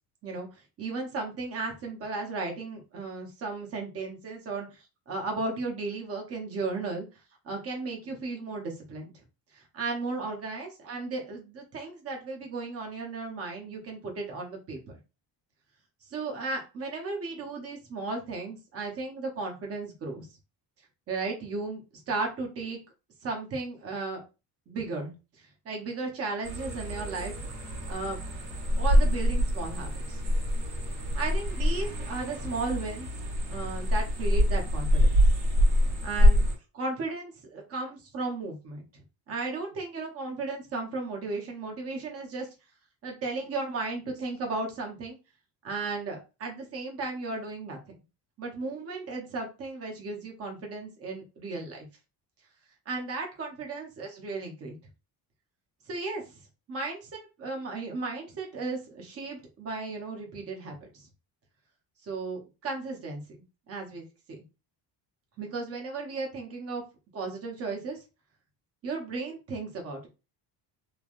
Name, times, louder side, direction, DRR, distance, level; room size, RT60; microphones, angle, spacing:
voice 1, 0.8-7.1 7.4-9.1 9.5-15.0 16.1-20.3 21.1-21.8 22.1-22.8 23.2-24.2 24.7-27.5 27.9-28.2 28.8-30.2 31.1-33.1 33.5-35.1 36.0-36.4 36.7-38.8 39.3-42.5 43.0-45.2 45.6-47.8 48.4-51.9 52.9-54.8 55.9-56.4 56.7-61.1 62.0-63.2 63.7-64.4 65.4-66.8 67.1-68.0 68.8-70.1, right 3 dB, 35° right, 1 dB, 0.8 m, -35 dB
sound 1, 26.4-36.6, equal, 65° right, 1.4 m, -25 dB
3.3 x 2.2 x 2.5 m, 0.29 s
cardioid pair, 175°, 42 cm